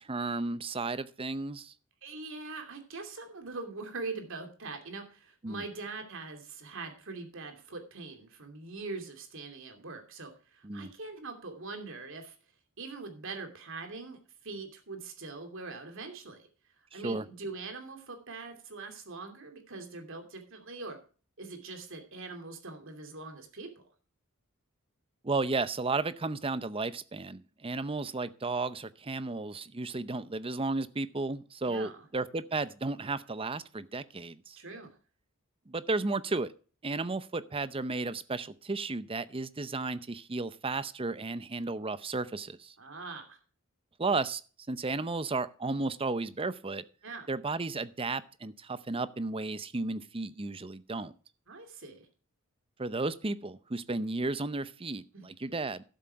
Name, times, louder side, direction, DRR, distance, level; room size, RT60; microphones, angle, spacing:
voice 1, 0.0-1.7 5.4-5.6 10.6-10.9 16.9-17.3 25.2-34.6 35.7-36.5 36.8-42.7 44.0-44.4 44.7-46.8 47.3-51.1 52.8-55.8, right 3 dB, 25° right, 15 dB, 0.7 m, -33 dB
voice 2, 2.0-12.3 12.8-14.2 14.4-16.5 16.9-21.0 21.4-23.7 31.6-32.0 34.6-34.9 42.8-43.4 47.0-47.3 51.5-52.1 55.1-55.5, right 3 dB, 65° right, 6 dB, 2.7 m, -42 dB
12.5 x 7.8 x 4.6 m, 0.38 s
head